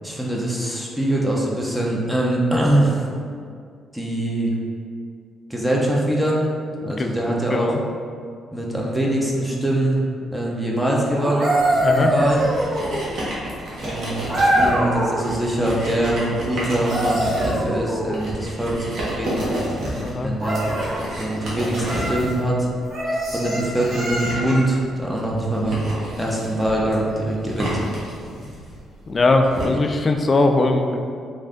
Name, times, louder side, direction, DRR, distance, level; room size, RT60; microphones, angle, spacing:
voice 1, 0.0-3.0 3.9-4.5 5.5-6.4 6.8-7.7 8.5-10.0 10.3-11.5 12.0-12.4 13.8-18.9 19.2-19.5 20.2-20.6 21.2-22.7 23.3-25.9 26.2-27.8, right 1 dB, 5° right, -3 dB, 0.6 m, -23 dB
voice 2, 6.8-7.2 7.5-7.8 11.8-12.1 19.9-20.3 29.1-31.0, left 2 dB, 35° left, 4 dB, 0.3 m, -20 dB
sound 1, 11.1-13.1 14.3-15.3 16.7-18.3 20.4-21.0 21.8-22.2 22.9-24.7 26.6-26.8, right 1 dB, 45° right, 1.2 m, -23 dB
sound 2, 11.6-29.6, right 1 dB, 70° right, 1.0 m, -31 dB
3.2 x 2.5 x 3.7 m, 2.2 s
cardioid pair, 90°, 0 cm